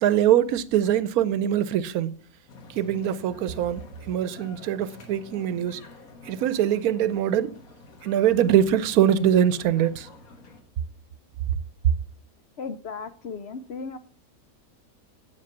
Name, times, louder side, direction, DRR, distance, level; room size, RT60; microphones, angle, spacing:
voice 1, 0.0-2.1 2.8-5.8 6.3-7.5 8.0-10.1, right 10 dB, 85° right, 1.1 m, -23 dB
sound 1, 2.5-10.6, left 2 dB, 75° left, 1.9 m, -48 dB
voice 2, 12.6-14.0, left 5 dB, 60° left, 0.7 m, -35 dB
8.1 x 7.6 x 5.8 m
omnidirectional pair, 1.5 m